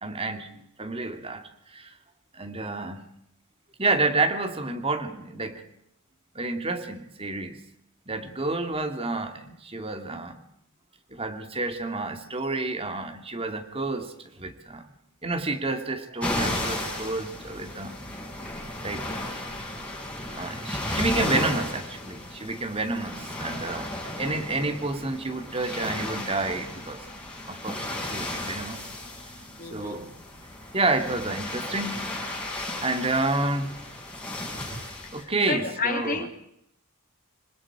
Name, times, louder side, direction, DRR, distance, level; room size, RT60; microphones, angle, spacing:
voice 1, 0.0-1.9 2.3-3.0 3.8-5.6 6.3-7.6 8.1-10.4 11.1-14.9 15.2-18.0 18.8-19.1 20.3-27.1 27.5-28.8 29.7-30.2 30.7-32.1 32.8-33.7 35.1-36.3, right 2 dB, 25° right, 7 dB, 2.5 m, -29 dB
sound 1, 16.2-35.2, left 1 dB, 5° left, 7.0 m, -34 dB
voice 2, 29.6-30.0 35.0-36.3, left 4 dB, 40° left, 5 dB, 2.8 m, -31 dB
26.0 x 26.0 x 5.0 m, 0.76 s
head